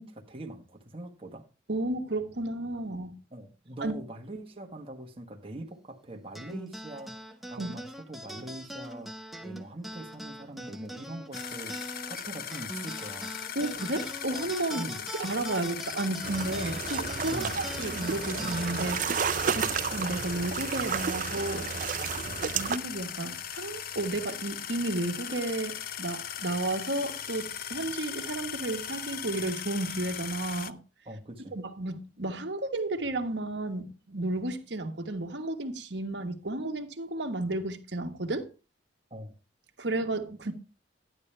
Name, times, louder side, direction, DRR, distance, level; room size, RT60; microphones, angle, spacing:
voice 1, 0.0-1.4 3.3-9.1 9.4-13.4 14.7-15.0 17.3-17.6 19.5-19.8 22.2-22.4 31.0-31.5 39.1-39.3, right 1 dB, 30° right, 1.5 m, -43 dB
voice 2, 1.7-3.1 3.8-3.9 7.6-7.7 13.5-14.9 15.2-21.7 22.5-30.8 31.5-38.5 39.8-40.5, right 2 dB, 65° right, 1.4 m, -32 dB
sound 1, 6.3-21.1, equal, ahead, 0.8 m, -43 dB
sound 2, 11.3-30.7, left 9 dB, 50° left, 0.5 m, -38 dB
sound 3, 16.2-22.8, right 7 dB, 45° right, 0.5 m, -32 dB
11.5 x 10.0 x 3.3 m
head